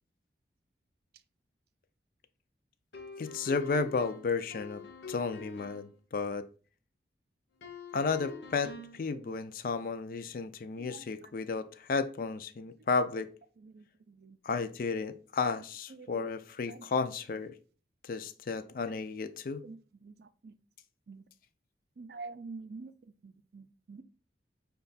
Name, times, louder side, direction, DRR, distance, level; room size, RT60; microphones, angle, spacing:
sound 1, 2.9-5.9 7.6-9.0, left 4 dB, 85° left, 0.7 m, -46 dB
voice 1, 3.2-6.5 7.9-13.3 14.4-17.5 18.0-19.6, left 4 dB, 50° left, 0.4 m, -33 dB
voice 2, 22.0-22.9 23.2-24.0, right 3 dB, 60° right, 0.4 m, -46 dB
5.7 x 2.3 x 3.9 m
head